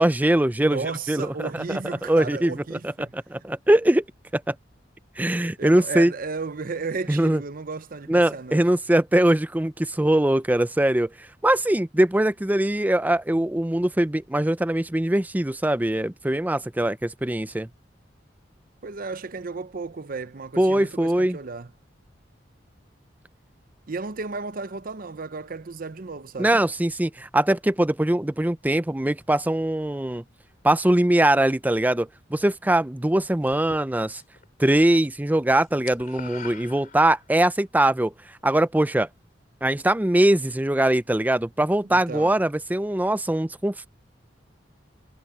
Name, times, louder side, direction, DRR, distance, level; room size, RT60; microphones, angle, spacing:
voice 1, 0.0-0.8 1.1-1.5 2.0-4.0 4.3-4.5 5.2-6.1 7.1-7.4 8.1-11.1 11.4-17.7 20.6-21.4 26.4-30.2 30.6-34.2 34.6-38.1 38.4-39.1 39.6-43.9, right 1 dB, 10° right, 0.5 m, -22 dB
voice 2, 0.6-3.1 5.6-8.7 18.8-21.7 23.9-26.6 41.9-42.4, right 4 dB, 50° right, 0.7 m, -34 dB
sound 1, 33.5-34.5 34.8-35.1 35.4-37.4, left 6 dB, 50° left, 3.6 m, -43 dB
head